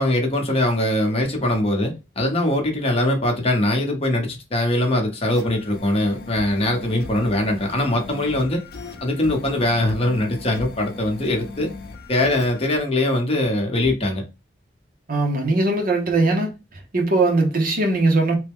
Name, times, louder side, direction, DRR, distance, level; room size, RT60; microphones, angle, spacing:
voice 1, 0.0-8.6 9.0-11.7 12.1-14.2, left 1 dB, 35° left, 0.9 m, -22 dB
sound 1, 5.3-12.8, left 3 dB, 60° left, 0.5 m, -38 dB
voice 2, 15.1-16.5 16.9-18.4, right 2 dB, 50° right, 0.8 m, -20 dB
3.0 x 2.2 x 3.4 m
head